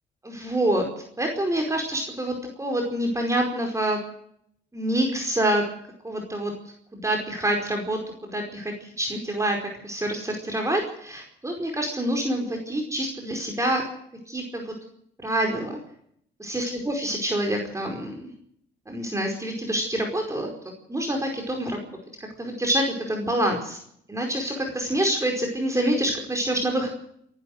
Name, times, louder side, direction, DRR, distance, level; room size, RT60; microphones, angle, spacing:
voice 1, 0.2-0.8 1.2-2.3 2.6-4.0 4.7-5.6 6.0-6.5 6.9-13.8 14.3-14.7 15.2-15.8 16.4-18.3 18.9-20.5 20.9-21.8 22.4-23.8 24.1-26.9, right 1 dB, 15° right, 1 dB, 4.9 m, -26 dB
27.5 x 12.0 x 8.0 m, 0.70 s
cardioid pair, 90°, 20 cm